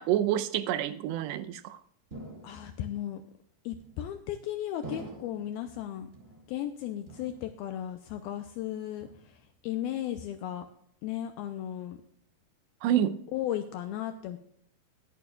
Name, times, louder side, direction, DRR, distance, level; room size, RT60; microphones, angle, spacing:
voice 1, 0.0-1.8 12.8-13.2, right 11 dB, 85° right, 11 dB, 2.8 m, -28 dB
sound 1, 2.1-3.0 3.8-4.3 4.8-5.6 6.1-6.7 7.1-7.8 8.1-8.6 9.0-9.6, right 1 dB, 25° right, 1.3 m, -46 dB
voice 2, 2.4-3.2 3.7-6.1 6.5-10.7 11.0-12.0 13.3-14.4, left 11 dB, 80° left, 7 dB, 2.2 m, -35 dB
20.5 x 9.0 x 2.4 m, 0.65 s
omnidirectional pair, 4.9 m